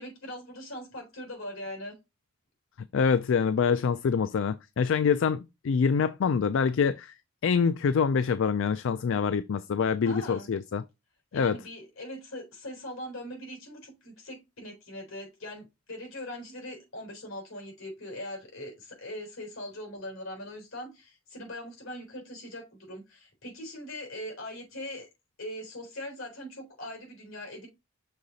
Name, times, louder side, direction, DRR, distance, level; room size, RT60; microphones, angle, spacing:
voice 1, 0.0-1.9 10.0-10.5 11.3-25.1 25.4-27.7, left 1 dB, 80° left, 3.8 m, -41 dB
voice 2, 2.9-7.1 7.4-10.8 11.3-11.5, left 6 dB, 65° left, 0.4 m, -25 dB
6.5 x 3.7 x 4.0 m
head